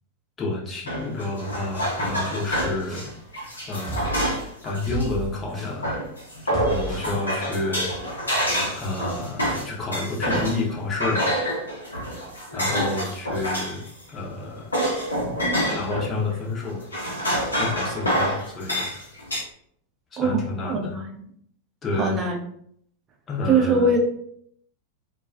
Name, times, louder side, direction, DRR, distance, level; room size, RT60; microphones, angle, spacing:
voice 1, 0.4-3.1 3.7-4.2 4.6-6.0 6.4-7.9 8.7-11.3 12.5-13.9 14.1-14.8 15.7-16.8 17.6-18.9 20.1-20.9 21.8-22.2 23.3-23.9, left 3 dB, 20° left, -4 dB, 0.7 m, -29 dB
sound 1, 0.9-5.1 5.8-10.7 11.0-13.9 14.2-16.1 16.6-19.4, equal, 80° left, 0.6 m, -27 dB
sound 2, 2.5-3.1 3.9-4.5 4.9-5.8 6.5-7.1, right 1 dB, 5° right, 1.1 m, -34 dB
voice 2, 20.2-21.2 22.0-22.4 23.5-24.0, right 3 dB, 25° right, -1 dB, 0.5 m, -22 dB
2.2 x 2.2 x 2.5 m, 0.67 s
figure-of-eight pair, 90°, 0 cm